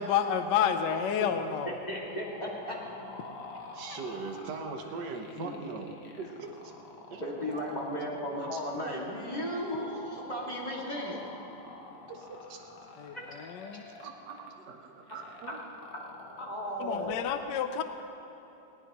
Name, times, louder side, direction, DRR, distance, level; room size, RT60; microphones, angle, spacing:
voice 1, 0.0-1.7 13.0-13.9 16.8-17.8, left 8 dB, 70° left, 8 dB, 1.3 m, -29 dB
sound 1, 1.3-17.2, left 3 dB, 85° left, 1.9 m, -48 dB
voice 2, 1.6-2.8 5.4-5.5 7.2-11.2 13.1-13.2 15.5-15.6 16.4-17.3, equal, 20° left, -4 dB, 2.2 m, -35 dB
voice 3, 3.7-5.9 6.2-6.7 7.1-7.5 8.5-8.6 12.3-12.6 14.0-15.6, right 4 dB, 65° right, 3 dB, 1.6 m, -41 dB
19.0 x 18.5 x 3.0 m, 3.0 s
omnidirectional pair, 2.1 m